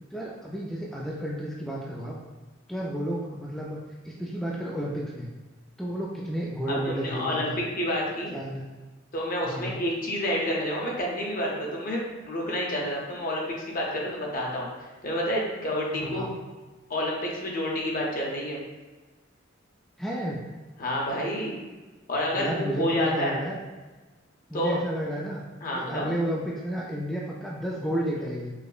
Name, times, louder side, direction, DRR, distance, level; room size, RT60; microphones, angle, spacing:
voice 1, 0.1-2.2 2.7-3.8 4.0-5.3 5.8-7.6 8.0-8.6 9.4-9.8 15.9-16.4 20.0-20.4 22.3-23.6 24.5-25.4 25.7-28.5, equal, ahead, -5 dB, 0.3 m, -32 dB
voice 2, 6.7-8.3 9.1-14.7 15.0-16.3 16.9-18.6 20.8-21.6 22.1-23.4 24.5-24.8 25.6-26.1, equal, 45° left, -2 dB, 0.7 m, -29 dB
4.9 x 2.0 x 2.4 m, 1.2 s
head